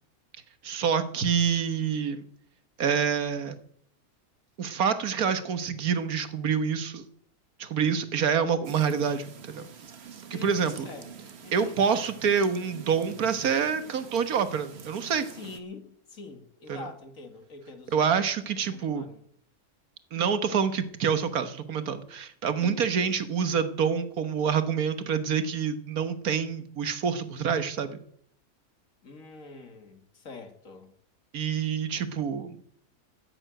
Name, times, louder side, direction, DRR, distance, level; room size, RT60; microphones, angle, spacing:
voice 1, 0.6-2.2 2.8-3.5 4.6-7.0 7.6-9.7 10.3-10.9 11.5-15.3 16.7-16.9 17.9-19.1 20.1-28.0 31.3-32.6, right 7 dB, 80° right, 10 dB, 1.7 m, -27 dB
sound 1, 8.6-15.6, right 7 dB, 50° right, 1.3 m, -47 dB
voice 2, 10.3-11.8 15.3-18.2 18.7-19.2 22.6-23.1 29.0-30.9, left 4 dB, 65° left, 6 dB, 2.3 m, -45 dB
13.5 x 8.9 x 9.0 m, 0.67 s
omnidirectional pair, 1.5 m